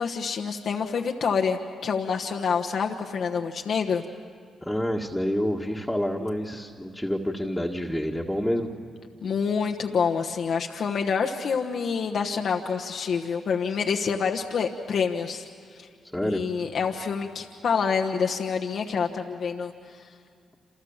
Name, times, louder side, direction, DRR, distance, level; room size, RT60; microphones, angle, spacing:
voice 1, 0.0-4.0 9.2-15.9 16.2-20.1, left 6 dB, 65° left, 2 dB, 1.2 m, -27 dB
voice 2, 4.6-8.7 16.1-16.4, equal, 5° left, -2 dB, 2.0 m, -28 dB
28.5 x 27.5 x 7.3 m, 2.3 s
supercardioid pair, 60°, 0 cm